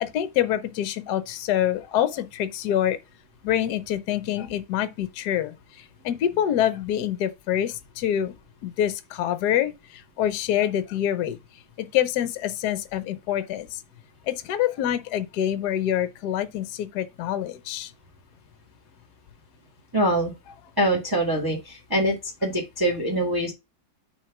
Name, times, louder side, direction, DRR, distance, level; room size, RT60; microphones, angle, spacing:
voice 1, 0.0-3.0 3.4-8.3 8.6-11.4 11.8-13.8 14.3-17.9, left 11 dB, 65° left, 1.2 m, -26 dB
voice 2, 19.9-20.3 20.8-22.2 22.4-23.5, right 1 dB, 10° right, 1.5 m, -24 dB
6.3 x 3.6 x 5.8 m
omnidirectional pair, 2.1 m